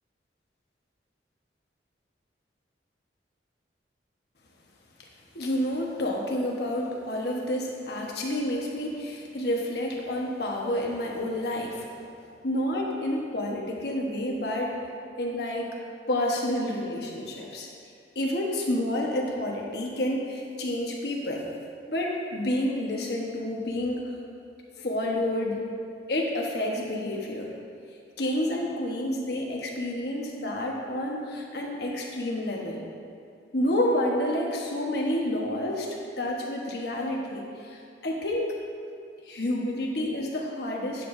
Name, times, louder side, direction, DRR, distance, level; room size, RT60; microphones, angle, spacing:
voice 1, 5.3-11.9 12.4-14.8 15.2-15.8 16.1-17.7 18.1-21.4 21.9-24.1 24.8-25.6 26.1-27.5 28.2-32.8 33.5-38.5 39.2-41.1, left 1 dB, 60° left, -1 dB, 1.2 m, -29 dB
11.0 x 8.0 x 2.7 m, 2.3 s
head